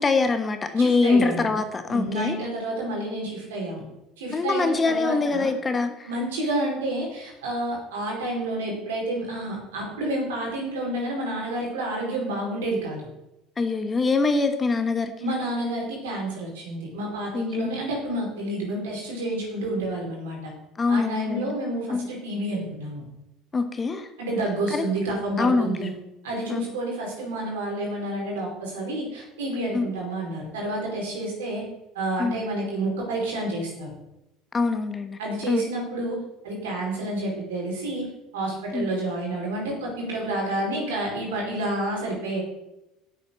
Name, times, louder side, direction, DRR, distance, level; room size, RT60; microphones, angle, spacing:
voice 1, 0.0-2.4 4.3-6.1 13.6-15.3 17.3-17.7 20.8-21.6 21.9-22.1 23.5-24.1 24.7-24.8 25.4-25.9 26.5-26.6 29.7-29.9 32.2-32.4 34.5-35.2 35.5-35.6 38.7-38.9, left 4 dB, 25° left, 8 dB, 1.3 m, -24 dB
voice 2, 0.8-1.5 1.9-3.8 4.2-5.5 6.1-13.0 15.2-20.4 20.9-23.0 24.2-25.9 26.2-31.7 31.9-33.9 35.2-36.2 36.4-42.4, right 1 dB, 70° right, -2 dB, 4.8 m, -29 dB
9.2 x 8.6 x 6.7 m, 0.91 s
figure-of-eight pair, 65°, 0 cm